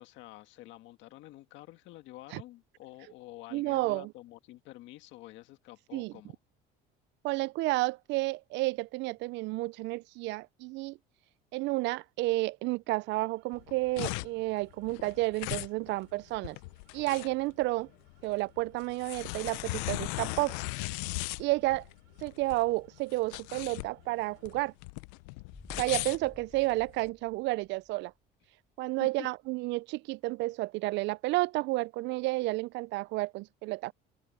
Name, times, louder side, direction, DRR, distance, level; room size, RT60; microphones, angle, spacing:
voice 1, 0.0-6.4 29.0-29.3, left 16 dB, 70° left, 1.8 m, -49 dB
voice 2, 3.5-4.1 5.9-6.1 7.2-11.0 11.5-16.6 16.9-17.9 18.2-20.5 21.4-21.8 22.2-24.7 25.8-28.1 28.8-33.9, right 21 dB, 65° right, 0.4 m, -31 dB
sound 1, 12.9-24.9, right 25 dB, 80° right, 7.0 m, -69 dB
sound 2, 13.5-27.1, left 24 dB, 85° left, 0.6 m, -38 dB
sound 3, 25.5-28.2 28.5-28.6, left 2 dB, 15° left, 5.7 m, -53 dB
supercardioid pair, 95°, 20 cm